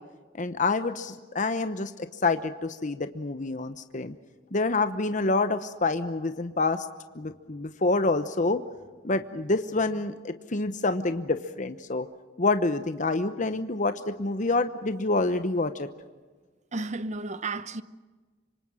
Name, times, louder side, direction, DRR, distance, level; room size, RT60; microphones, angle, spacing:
voice 1, 0.4-4.1 4.5-6.9 7.1-8.6 9.0-12.1 12.4-15.9, left 3 dB, 40° left, 0.9 m, -27 dB
voice 2, 16.7-17.8, right 3 dB, 40° right, 0.8 m, -32 dB
26.5 x 25.0 x 6.4 m
head